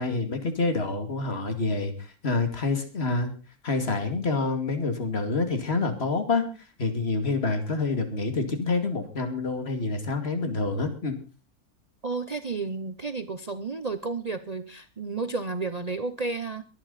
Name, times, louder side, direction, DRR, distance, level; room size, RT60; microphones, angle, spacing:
voice 1, 0.0-3.3 3.6-6.4 6.8-11.1, left 3 dB, 40° left, 7 dB, 2.6 m, -27 dB
voice 2, 12.0-16.6, right 3 dB, 35° right, 11 dB, 0.7 m, -32 dB
23.5 x 9.5 x 4.1 m, 0.33 s
omnidirectional pair, 1.6 m